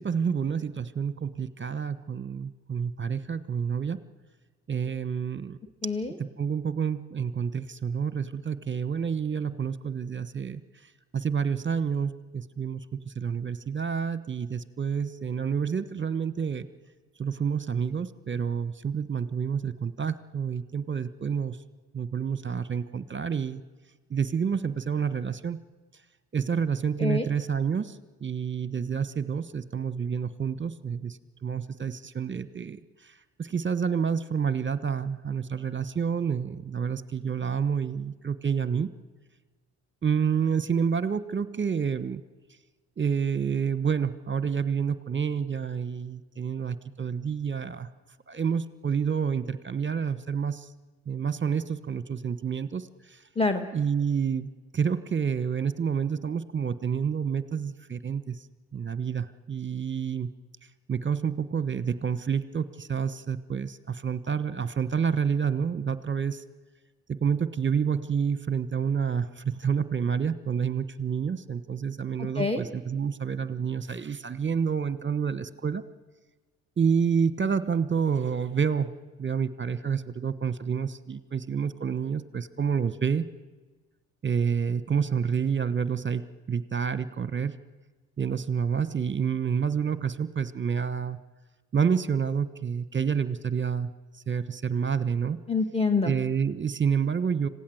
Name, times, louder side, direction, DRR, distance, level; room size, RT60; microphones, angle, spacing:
voice 1, 0.0-4.0 4.7-5.6 6.2-10.6 11.1-16.7 17.2-21.6 21.9-23.6 24.1-25.6 26.3-38.9 40.0-42.2 43.0-47.9 48.3-50.7 51.1-53.2 53.7-58.4 58.7-60.3 60.9-66.4 67.1-75.8 76.8-78.9 79.2-83.2 84.2-87.5 88.2-91.2 91.7-93.9 94.3-95.4 96.0-97.5, right 6 dB, 25° right, 14 dB, 1.2 m, -28 dB
voice 2, 5.8-6.2 27.0-27.3 53.4-53.7 72.2-72.6 95.5-96.1, left 3 dB, 15° left, 6 dB, 1.7 m, -26 dB
26.0 x 17.0 x 7.9 m, 1.3 s
hypercardioid pair, 50°, 41 cm